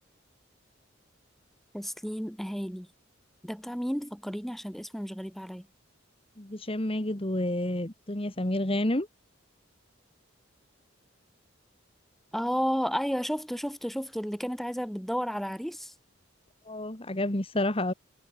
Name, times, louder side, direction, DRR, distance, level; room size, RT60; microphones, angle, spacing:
voice 1, 1.7-2.9 3.4-5.7 12.3-15.9, equal, ahead, 4.7 m, -32 dB
voice 2, 6.4-9.1 16.7-17.9, left 1 dB, 30° left, 2.0 m, -29 dB
head